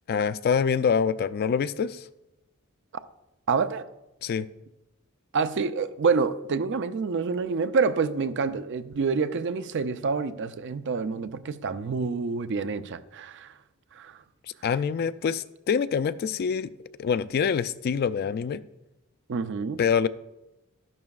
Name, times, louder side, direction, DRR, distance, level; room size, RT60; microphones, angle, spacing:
voice 1, 0.1-2.1 4.2-4.5 14.6-16.7 17.0-18.6 19.8-20.1, left 6 dB, 45° left, 0.3 m, -25 dB
voice 2, 3.5-3.9 5.3-13.5 13.9-14.2 19.3-19.8, right 5 dB, 55° right, 0.5 m, -27 dB
12.5 x 11.0 x 2.4 m
head